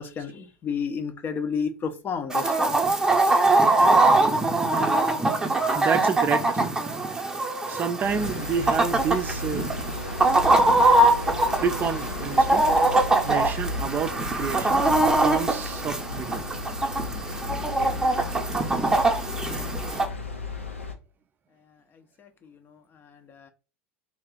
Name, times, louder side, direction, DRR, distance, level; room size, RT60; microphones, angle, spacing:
voice 1, 0.0-2.8 22.2-23.5, left 6 dB, 30° left, 0.6 m, -32 dB
Chicken rooster, 2.3-20.1, right 2 dB, 10° right, 0.7 m, -22 dB
voice 2, 5.7-6.8 7.1-7.2 7.7-9.7 11.6-12.7 13.2-14.8 15.2-16.5, right 6 dB, 30° right, 0.4 m, -29 dB
sound 1, 8.0-20.9, left 3 dB, 85° left, 0.5 m, -34 dB
3.4 x 2.4 x 3.7 m
figure-of-eight pair, 75°, 7 cm